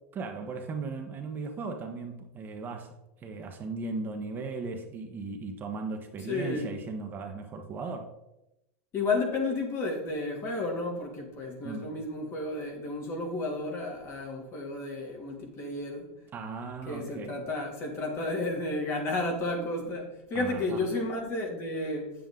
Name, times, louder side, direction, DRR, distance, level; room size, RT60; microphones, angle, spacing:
voice 1, 0.1-8.1 11.6-11.9 16.3-17.4 20.3-20.8, right 4 dB, 25° right, 1.1 m, -37 dB
voice 2, 6.3-6.7 8.9-16.1 16.9-22.1, left 2 dB, 35° left, 2.6 m, -32 dB
9.1 x 7.5 x 3.8 m
supercardioid pair, 135°, 7 cm